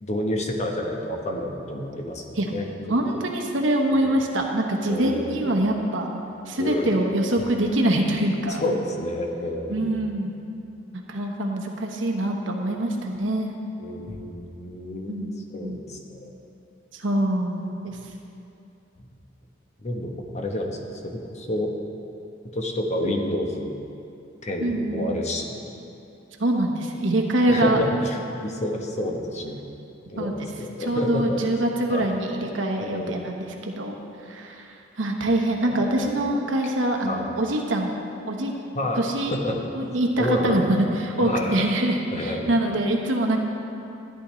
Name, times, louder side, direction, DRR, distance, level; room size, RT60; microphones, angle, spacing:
voice 1, 0.0-2.7 3.1-3.2 4.0-4.2 4.8-5.5 6.6-7.0 8.5-10.0 13.8-15.2 15.5-16.3 17.9-18.0 19.0-19.1 19.8-20.8 21.0-21.7 22.5-23.8 24.4-25.6 27.5-29.6 30.1-31.4 31.9-32.1 32.8-33.2 35.6-36.1 37.0-37.3 38.7-39.0 39.3-40.6 41.2-41.6 42.1-42.6, left 1 dB, 40° left, 2 dB, 1.0 m, -29 dB
voice 2, 2.9-6.1 6.5-8.6 9.7-10.3 10.9-13.5 15.1-15.3 15.6-15.8 16.9-17.9 23.0-23.2 24.6-25.2 26.4-27.8 30.2-30.3 30.8-33.9 34.3-37.9 38.3-38.5 39.0-39.3 39.7-43.4, right 1 dB, 85° right, 1 dB, 1.1 m, -24 dB
13.5 x 10.0 x 3.2 m, 2.7 s
head